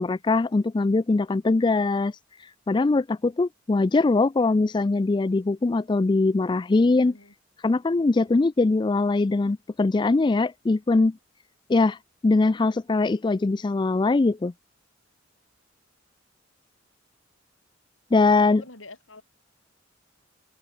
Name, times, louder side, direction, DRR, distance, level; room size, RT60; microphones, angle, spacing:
voice 1, 0.0-2.1 2.7-7.1 7.6-11.1 11.7-12.0 12.2-14.5 18.1-18.6, left 3 dB, 25° left, 0.3 m, -22 dB
voice 2, 7.0-7.3 18.4-19.2, left 2 dB, 80° left, 7.5 m, -45 dB
head